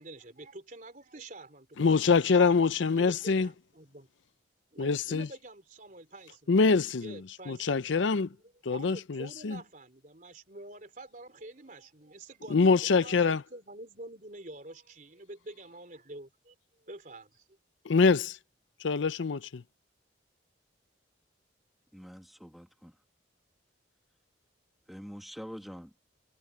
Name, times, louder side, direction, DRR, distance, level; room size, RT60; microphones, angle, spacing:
voice 1, 0.0-4.1 4.7-6.7 7.0-8.0 8.3-17.5, right 2 dB, 45° right, 3.6 m, -48 dB
voice 2, 1.8-3.5 4.8-5.3 6.5-7.2 7.5-8.3 8.7-9.6 12.5-13.4 17.9-18.4 18.8-19.6, left 4 dB, 75° left, 0.6 m, -24 dB
voice 3, 21.9-23.0 24.9-25.9, equal, ahead, 1.8 m, -45 dB
head